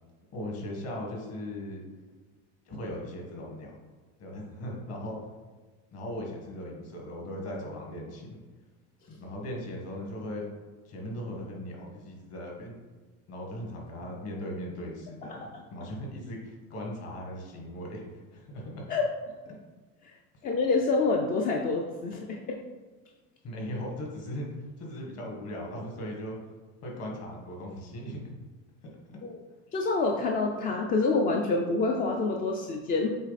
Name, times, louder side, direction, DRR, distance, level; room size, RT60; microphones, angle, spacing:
voice 1, 0.3-1.9 2.7-3.7 4.2-5.2 5.9-8.4 9.1-10.4 10.9-12.7 13.3-18.9 23.4-26.4 26.8-28.2, equal, 40° left, -1 dB, 1.8 m, -38 dB
voice 2, 15.3-15.6 18.9-19.1 20.4-22.6 29.2-29.3 29.7-33.1, left 3 dB, 25° left, 2 dB, 0.4 m, -27 dB
7.4 x 3.3 x 4.1 m, 1.3 s
supercardioid pair, 140°, 37 cm